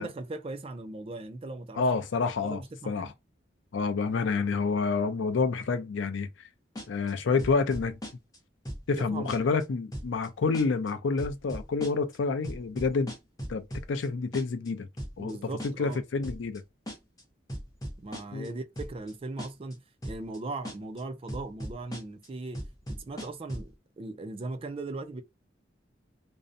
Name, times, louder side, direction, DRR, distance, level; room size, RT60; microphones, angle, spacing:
voice 1, 0.0-1.9 2.4-3.1 9.0-9.3 15.2-16.0 18.0-25.2, right 2 dB, 30° right, 0.3 m, -39 dB
voice 2, 1.8-3.1 3.7-6.3 6.9-8.0 8.9-13.1 13.5-14.9 15.2-15.4 15.6-16.6 18.3-18.5, left 4 dB, 80° left, 0.4 m, -28 dB
sound 1, 6.8-7.1 7.4-8.4 8.6-9.0 9.3-9.6 9.9-10.3 10.5-10.9 11.2-12.2 12.4-14.1 14.3-14.7 15.0-15.3 15.6-16.0 16.2-16.6 16.9-17.2 17.5-18.5 18.8-19.1 19.4-19.7 20.0-20.4 20.6-21.0 21.3-22.3 22.5-23.7, equal, 20° left, 0.6 m, -38 dB
2.6 x 2.0 x 2.5 m
head